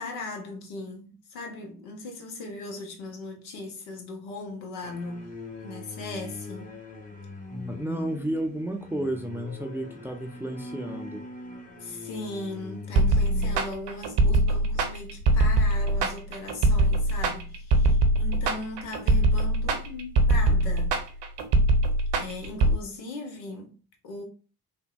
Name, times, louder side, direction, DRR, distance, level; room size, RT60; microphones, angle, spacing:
voice 1, 0.0-6.8 11.8-20.9 22.2-23.7 24.0-24.2, left 2 dB, 75° left, 0.8 m, -38 dB
sound 1, 4.8-13.6, left 2 dB, 15° left, 1.0 m, -41 dB
voice 2, 7.5-11.2, right 1 dB, 5° right, 0.4 m, -32 dB
sound 2, 13.0-22.8, right 2 dB, 65° right, 0.6 m, -22 dB
3.3 x 2.2 x 2.2 m
hypercardioid pair, 40°, 47 cm